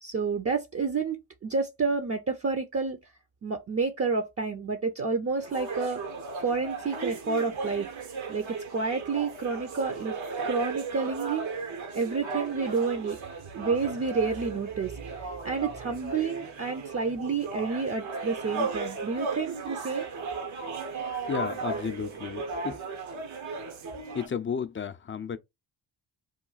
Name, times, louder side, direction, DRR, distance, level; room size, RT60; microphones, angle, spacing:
voice 1, 0.0-3.0 3.4-6.0 6.4-7.9 8.3-10.2 10.4-11.5 11.9-13.2 13.5-20.1, right 4 dB, 30° right, 0.7 m, -29 dB
sound 1, 5.4-24.3, right 4 dB, 70° right, 1.1 m, -36 dB
voice 2, 21.3-22.8 24.1-25.4, left 7 dB, 25° left, 0.5 m, -33 dB
3.1 x 2.2 x 3.9 m
hypercardioid pair, 40°, 49 cm